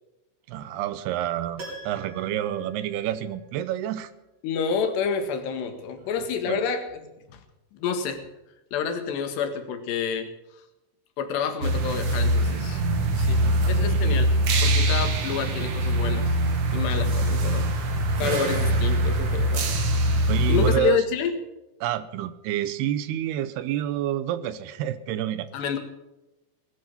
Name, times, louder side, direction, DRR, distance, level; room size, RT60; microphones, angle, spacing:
voice 1, 0.5-4.1 6.5-6.6 13.3-14.2 16.9-17.2 18.2-18.4 20.3-21.0 21.8-25.5, right 11 dB, 80° right, 14 dB, 2.7 m, -29 dB
Piano, 1.6-3.7 3.9-4.0, right 2 dB, 40° right, 5.2 m, -43 dB
voice 2, 4.4-7.0 7.3-7.4 7.7-8.2 8.7-10.3 11.2-12.9 13.2-14.3 14.6-16.3 16.7-17.6 18.2-19.7 20.5-21.4 25.5-25.8, left 6 dB, 80° left, 6 dB, 3.9 m, -28 dB
sound 1, 11.6-20.7, right 1 dB, 55° right, 1.6 m, -23 dB
19.0 x 11.5 x 5.6 m, 0.98 s
omnidirectional pair, 4.9 m